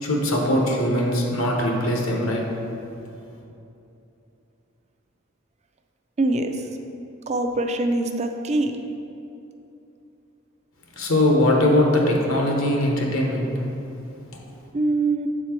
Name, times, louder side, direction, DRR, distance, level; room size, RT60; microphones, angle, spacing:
voice 1, 0.0-2.4 11.0-13.5, left 1 dB, 80° left, 0 dB, 1.1 m, -21 dB
voice 2, 6.2-6.7 7.3-8.7 14.7-15.3, right 2 dB, 35° right, 6 dB, 0.4 m, -23 dB
7.4 x 4.4 x 4.4 m, 2.8 s
head